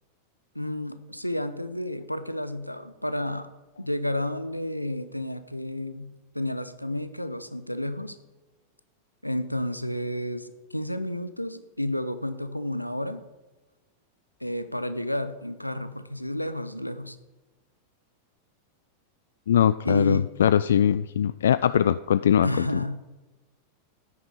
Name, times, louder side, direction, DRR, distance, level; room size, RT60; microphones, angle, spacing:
voice 1, 0.5-3.5 3.8-8.2 9.2-13.2 14.4-17.2 19.8-20.3 22.4-23.1, left 1 dB, 90° left, 11 dB, 0.8 m, -31 dB
voice 2, 19.5-22.8, left 9 dB, 65° left, 16 dB, 0.3 m, -21 dB
13.0 x 9.6 x 5.5 m, 1.1 s
figure-of-eight pair, 90°, 0 cm